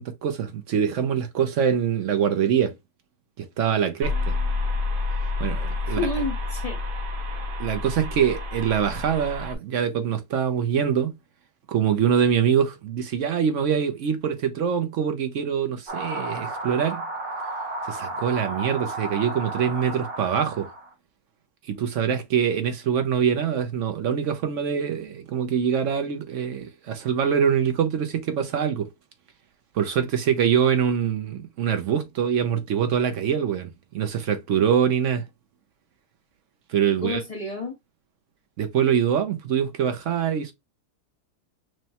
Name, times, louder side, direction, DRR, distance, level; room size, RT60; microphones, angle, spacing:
voice 1, 0.0-2.8 3.4-4.4 5.4-6.1 7.6-11.1 11.7-17.0 17.8-20.7 21.7-28.9 29.7-35.3 36.7-37.2 38.6-40.5, right 8 dB, 65° right, 0.8 m, -24 dB
sound 1, 4.0-9.5, left 3 dB, 85° right, 0.4 m, -28 dB
voice 2, 5.8-7.0 36.9-37.8, left 2 dB, 30° left, 0.7 m, -31 dB
sound 2, 15.9-20.9, right 2 dB, 35° right, 0.9 m, -33 dB
6.2 x 2.1 x 2.8 m
omnidirectional pair, 1.7 m